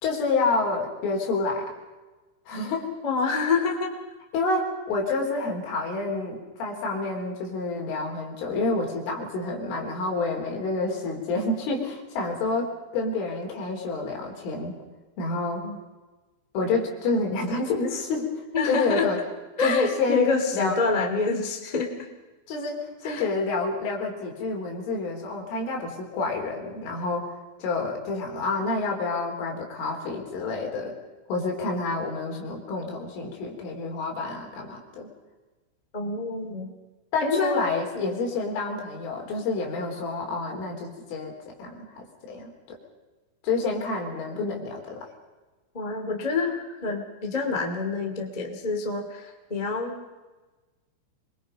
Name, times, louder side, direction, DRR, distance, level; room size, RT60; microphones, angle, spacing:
voice 1, 0.0-1.7 2.5-2.9 4.3-14.7 15.2-15.6 16.5-18.3 18.7-19.2 19.6-20.8 22.5-27.3 27.6-30.9 31.3-35.1 37.1-42.8 43.4-45.1, left 3 dB, 70° left, 1 dB, 6.2 m, -28 dB
voice 2, 3.0-3.9 15.6-15.7 18.5-19.1 19.6-21.9 23.0-23.3 35.9-36.7 37.2-37.6 37.9-38.1 45.7-49.9, left 4 dB, 90° left, 2 dB, 0.3 m, -27 dB
25.5 x 22.0 x 5.3 m, 1.2 s
omnidirectional pair, 5.9 m